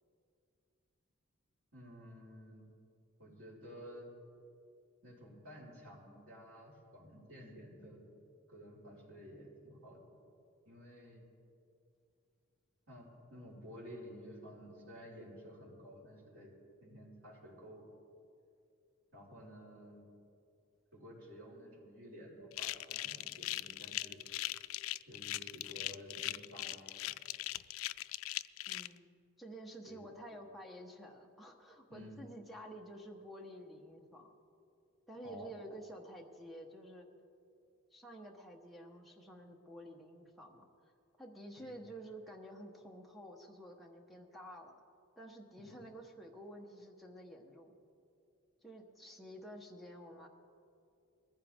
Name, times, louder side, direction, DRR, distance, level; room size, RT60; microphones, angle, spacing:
voice 1, 1.7-2.7 3.2-4.1 5.0-8.0 8.5-10.0 10.6-11.2 12.9-16.5 16.8-17.8 19.1-20.0 20.9-24.2 25.1-27.1 29.9-30.1 31.9-32.2 35.2-35.5 41.6-41.9 45.6-45.9, equal, 75° right, -6 dB, 4.8 m, -52 dB
sound 1, 22.5-28.9, left 16 dB, 80° left, 0.3 m, -40 dB
voice 2, 28.7-34.4 35.1-37.1 37.9-40.9 41.2-44.7 45.2-47.8 48.6-50.3, right 1 dB, ahead, 1 dB, 1.0 m, -51 dB
21.0 x 15.0 x 3.6 m, 2.6 s
head